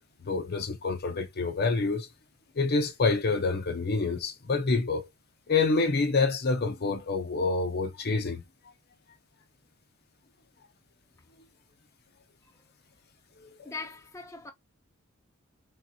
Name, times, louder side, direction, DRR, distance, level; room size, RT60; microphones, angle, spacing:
voice 1, 0.2-2.1 2.6-5.1 5.5-8.4 13.4-13.7, left 3 dB, 50° left, 0.7 m, -27 dB
voice 2, 13.6-14.5, left 4 dB, 15° left, 0.5 m, -40 dB
3.2 x 2.7 x 2.7 m
head